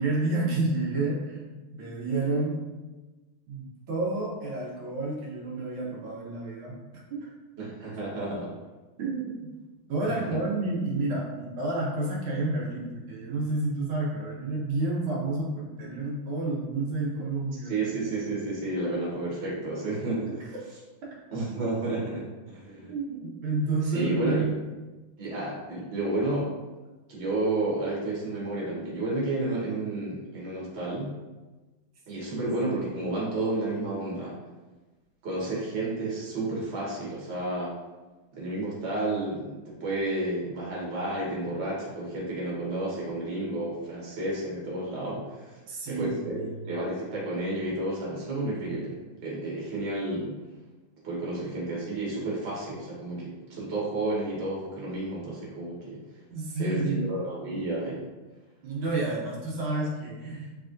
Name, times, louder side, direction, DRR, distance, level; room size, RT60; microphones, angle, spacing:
voice 1, 0.0-1.4 1.7-2.6 3.5-6.8 7.1-7.3 9.0-9.5 9.9-17.7 22.9-24.6 45.7-46.5 56.3-57.1 58.6-60.6, right 2 dB, 85° right, -4 dB, 1.8 m, -30 dB
voice 2, 7.6-8.5 10.0-10.4 17.6-20.5 21.3-22.9 23.8-24.5 25.2-26.5 27.1-31.1 32.1-34.3 35.2-37.7 38.4-45.6 45.9-50.3 51.0-56.0 56.6-58.1, right 2 dB, 40° right, -6 dB, 1.2 m, -31 dB
4.1 x 3.4 x 2.5 m, 1.2 s
omnidirectional pair, 2.2 m